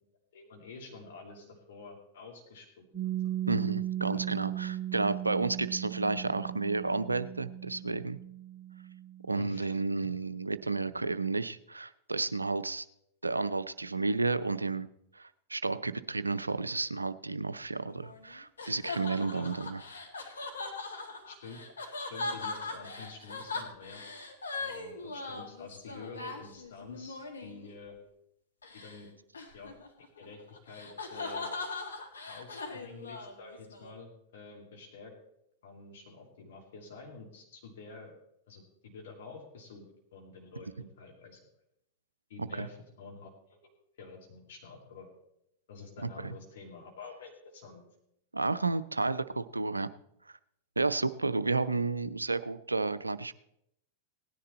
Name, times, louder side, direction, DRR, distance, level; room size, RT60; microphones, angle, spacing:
voice 1, 0.3-2.8 4.1-4.3 9.4-9.7 19.3-19.4 21.3-21.6 22.0-24.0 24.6-28.0 28.8-29.1 29.5-29.7 30.2-31.5 32.3-35.1 35.6-38.1 38.5-39.8 40.1-41.4 42.3-43.6 44.0-45.1 45.7-47.8, left 4 dB, 60° left, 1 dB, 2.6 m, -48 dB
Piano, 2.9-10.2, right 12 dB, 25° right, 1.7 m, -37 dB
voice 2, 3.5-8.2 9.3-12.9 13.2-14.9 15.1-19.8 42.4-42.7 46.0-46.4 48.3-49.9 50.8-53.3, right 3 dB, 85° right, 15 dB, 0.5 m, -32 dB
sound 1, 17.9-27.7 28.6-29.0 29.3-33.9, left 3 dB, 75° left, 1.7 m, -40 dB
17.5 x 10.0 x 4.3 m, 0.79 s
figure-of-eight pair, 95°, 0 cm